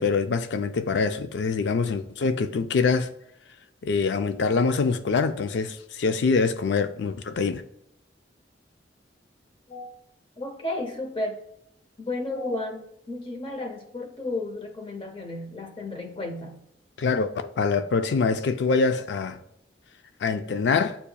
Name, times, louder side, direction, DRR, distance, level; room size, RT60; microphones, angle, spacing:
voice 1, 0.0-3.1 3.8-7.6 17.0-19.4 20.2-21.0, left 4 dB, 70° left, 0.4 m, -24 dB
voice 2, 10.4-11.4 12.0-16.6, left 2 dB, 30° left, 0.7 m, -33 dB
8.2 x 2.9 x 2.2 m
head